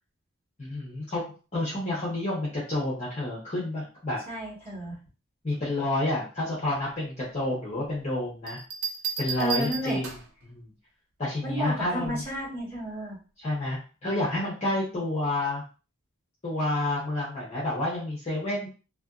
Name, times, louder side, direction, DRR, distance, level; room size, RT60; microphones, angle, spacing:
voice 1, 0.6-1.2 1.5-4.2 5.4-8.6 9.2-10.1 10.4-10.7 11.2-12.2 13.4-15.6 16.4-18.7, left 1 dB, 30° left, -7 dB, 0.8 m, -29 dB
voice 2, 4.3-4.9 9.4-10.0 11.4-13.2, equal, 10° left, -7 dB, 1.4 m, -32 dB
sound 1, 8.5-10.4 12.0-12.4, right 6 dB, 65° right, 0.6 m, -34 dB
2.8 x 2.5 x 2.4 m, 0.36 s
head